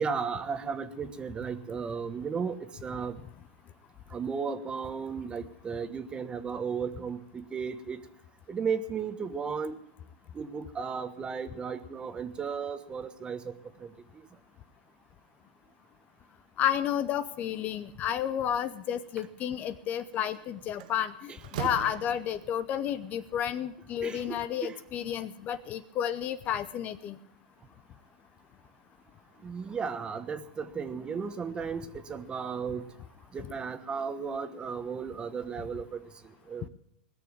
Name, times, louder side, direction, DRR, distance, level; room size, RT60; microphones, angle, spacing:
voice 1, 0.0-3.2 4.1-8.0 8.5-9.8 10.3-13.5 13.8-13.9 21.3-21.4 24.0-24.7 29.4-32.8 33.3-36.0 36.5-36.7, right 6 dB, 20° right, 10 dB, 1.2 m, -35 dB
voice 2, 16.6-27.2, left 10 dB, 35° left, 14 dB, 0.8 m, -31 dB
Slam, 20.1-20.4 20.8-22.7, right 13 dB, 65° right, 0.7 m, -39 dB
20.0 x 6.9 x 8.8 m, 0.73 s
hypercardioid pair, 125°, 5 cm